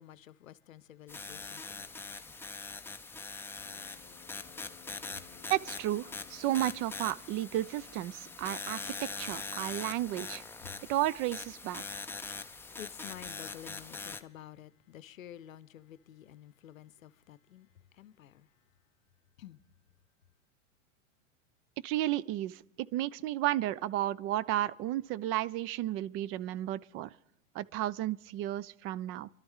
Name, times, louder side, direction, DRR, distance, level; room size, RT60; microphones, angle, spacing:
voice 1, 0.0-2.0 10.6-10.9 12.2-17.7 17.9-18.5 19.4-19.6, left 11 dB, 80° left, 0.7 m, -51 dB
sound 1, 1.1-14.2, left 4 dB, 5° left, 0.6 m, -42 dB
Brass instrument, 3.6-9.5, left 10 dB, 30° left, 0.9 m, -60 dB
voice 2, 5.5-10.4 10.9-12.0 21.8-27.1 27.5-29.3, right 14 dB, 35° right, 0.5 m, -33 dB
26.5 x 12.5 x 3.6 m
hypercardioid pair, 100°, 40 cm